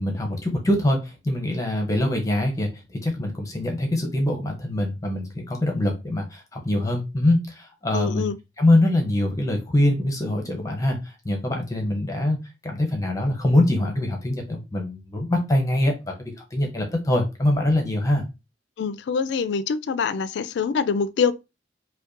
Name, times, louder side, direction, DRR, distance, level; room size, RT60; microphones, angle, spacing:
voice 1, 0.0-8.3 8.6-12.4 12.6-18.2, left 1 dB, 20° left, 0.7 m, -23 dB
voice 2, 7.9-8.4 18.8-21.3, left 6 dB, 65° left, 0.3 m, -25 dB
5.0 x 2.2 x 2.5 m
head